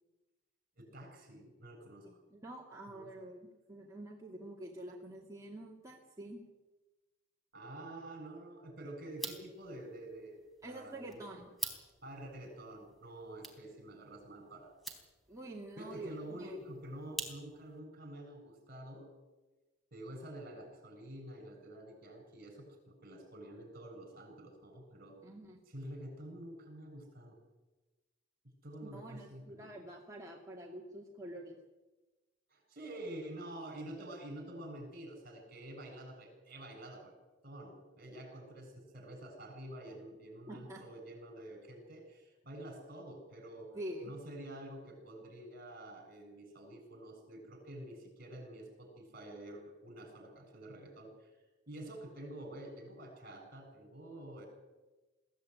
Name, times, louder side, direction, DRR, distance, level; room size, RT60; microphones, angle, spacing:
voice 1, 0.8-2.2 2.9-3.1 7.5-11.2 12.0-14.9 15.8-19.1 19.9-25.2 25.7-27.4 28.4-29.7 32.5-37.1 37.4-43.7 44.0-51.3 51.7-54.5, right 1 dB, 50° right, 4 dB, 7.5 m, -48 dB
voice 2, 2.0-6.4 10.6-11.5 15.3-16.6 25.2-25.6 28.8-31.6 40.5-40.8 43.7-44.1, right 1 dB, 15° right, -2 dB, 2.4 m, -47 dB
sound 1, 9.1-17.8, right 2 dB, ahead, 3.4 m, -48 dB
22.0 x 15.5 x 9.6 m, 1.2 s
head